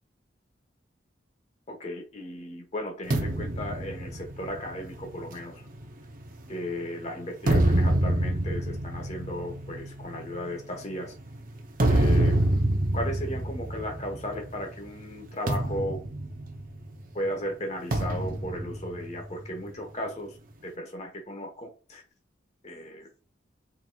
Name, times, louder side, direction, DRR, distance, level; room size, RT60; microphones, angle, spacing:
voice 1, 1.7-5.6 6.5-11.2 11.9-12.4 12.9-16.0 17.1-20.4 20.6-22.0 22.6-23.1, equal, 35° left, 1.2 m, -35 dB
sound 1, 3.1-6.7 7.2-14.6 14.9-15.1 15.5-17.1 17.9-19.7, right 1 dB, 45° right, 0.7 m, -27 dB
4.2 x 4.0 x 2.4 m
head